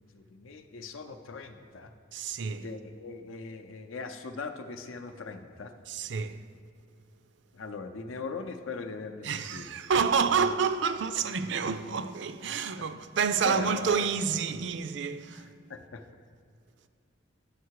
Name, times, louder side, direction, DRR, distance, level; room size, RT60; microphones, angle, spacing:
voice 1, 0.0-1.9 2.6-5.7 7.5-9.7 10.2-10.4 12.8-12.9 13.4-14.0 15.3-16.0, left 4 dB, 80° left, 0.6 m, -40 dB
voice 2, 2.1-2.7 5.9-6.4 9.2-15.5, right 6 dB, 60° right, 0.4 m, -29 dB
9.2 x 6.5 x 4.7 m
head